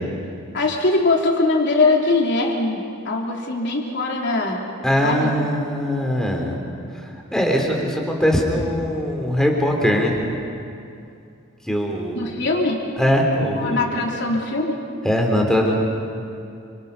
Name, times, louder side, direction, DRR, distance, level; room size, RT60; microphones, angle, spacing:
voice 1, 0.5-4.6 5.0-5.3 12.1-12.8 13.6-14.8, left 3 dB, 55° left, 0 dB, 3.4 m, -21 dB
voice 2, 4.8-6.5 7.0-10.2 11.7-12.3 13.0-13.9 15.0-15.7, equal, 5° left, 0 dB, 3.5 m, -21 dB
29.5 x 26.0 x 5.6 m, 2.5 s
head